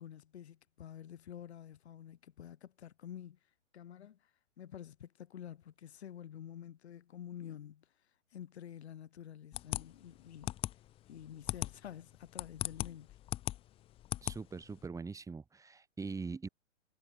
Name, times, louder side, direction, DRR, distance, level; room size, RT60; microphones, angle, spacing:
voice 1, 0.0-3.4 3.7-7.9 8.3-10.8 11.1-13.2, left 10 dB, 60° left, 3.9 m, -49 dB
sound 1, 9.5-14.8, left 14 dB, 15° left, 0.7 m, -39 dB
voice 2, 14.2-16.5, right 4 dB, 10° right, 4.5 m, -42 dB
figure-of-eight pair, 120°, 37 cm